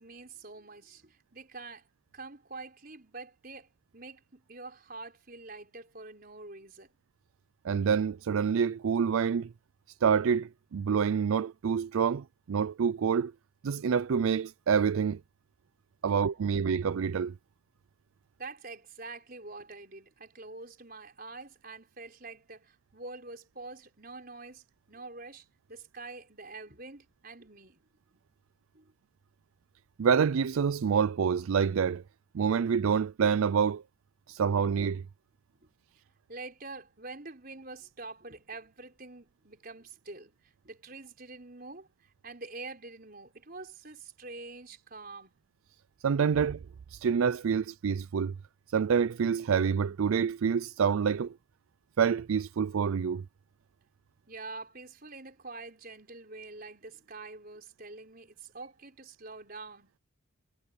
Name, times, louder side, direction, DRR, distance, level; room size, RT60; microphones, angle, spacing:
voice 1, 0.0-3.7 3.9-6.9 16.1-16.7 18.4-27.8 28.7-28.9 34.3-34.4 35.5-35.7 36.3-45.3 54.3-60.0, right 3 dB, 45° right, 4.9 m, -46 dB
voice 2, 7.6-9.5 10.0-13.3 13.6-15.2 16.0-17.3 30.0-32.0 32.3-33.8 34.3-35.0 46.0-46.6 46.9-48.3 48.7-51.3 52.0-53.2, right 6 dB, 80° right, 0.4 m, -27 dB
head